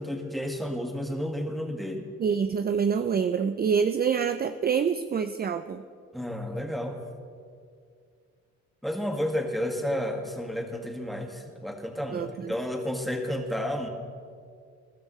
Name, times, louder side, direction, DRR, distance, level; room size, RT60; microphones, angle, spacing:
voice 1, 0.0-2.1 6.1-7.0 8.8-13.9, equal, ahead, 2 dB, 1.8 m, -31 dB
voice 2, 2.2-5.8 12.1-12.5, right 6 dB, 30° right, 10 dB, 0.4 m, -26 dB
21.0 x 12.5 x 3.2 m, 2.2 s
cardioid pair, 90°, 30 cm